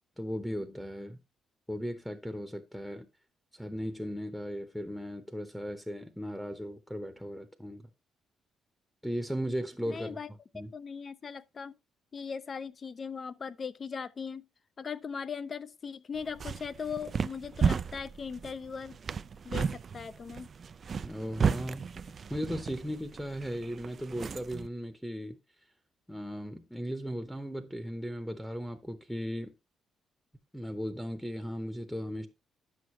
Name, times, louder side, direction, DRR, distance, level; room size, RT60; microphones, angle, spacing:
voice 1, 0.2-1.2 1.7-3.1 3.5-7.9 9.0-10.2 10.5-10.7 21.0-21.9 22.3-25.4 26.1-29.5 30.5-32.3, equal, ahead, 0.8 m, -37 dB
voice 2, 9.9-10.3 10.7-11.7 12.1-14.4 14.8-19.0 19.4-20.5, left 6 dB, 40° left, 0.5 m, -39 dB
sound 1, 16.2-24.7, right 6 dB, 45° right, 0.3 m, -34 dB
9.2 x 6.4 x 3.1 m
cardioid pair, 90°, 0 cm